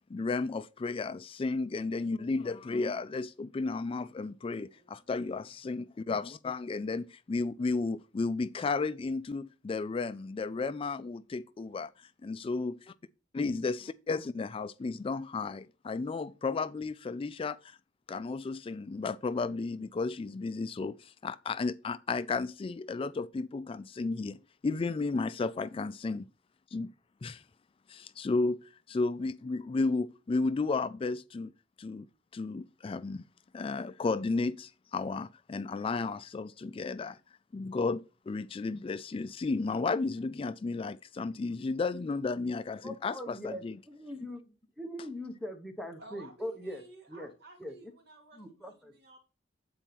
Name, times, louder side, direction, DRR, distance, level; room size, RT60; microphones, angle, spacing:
voice 1, 0.1-12.8 13.3-17.8 18.1-24.4 24.6-26.3 26.7-26.9 27.2-27.4 27.9-31.5 31.8-32.1 32.3-33.2 33.5-37.2 37.5-43.8, left 3 dB, 30° left, 0.3 m, -33 dB
voice 2, 4.7-5.6 46.0-49.2, right 2 dB, 60° right, 2.7 m, -55 dB
voice 3, 42.8-44.4 44.8-46.8 47.1-47.3 47.6-47.7 48.3-48.9, equal, ahead, 1.1 m, -41 dB
8.6 x 4.5 x 5.9 m
head